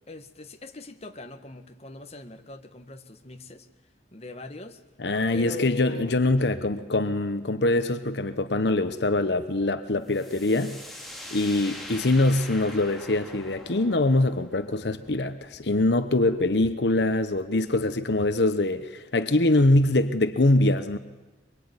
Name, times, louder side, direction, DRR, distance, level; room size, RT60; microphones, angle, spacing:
voice 1, 0.1-3.7 4.1-4.8 5.3-6.2, left 3 dB, 35° left, 6 dB, 1.7 m, -41 dB
voice 2, 5.0-10.8 11.3-21.0, left 2 dB, 75° left, 11 dB, 1.0 m, -23 dB
sound 1, 10.1-17.7, left 1 dB, ahead, 3.3 m, -44 dB
24.0 x 23.0 x 9.8 m, 1.2 s
head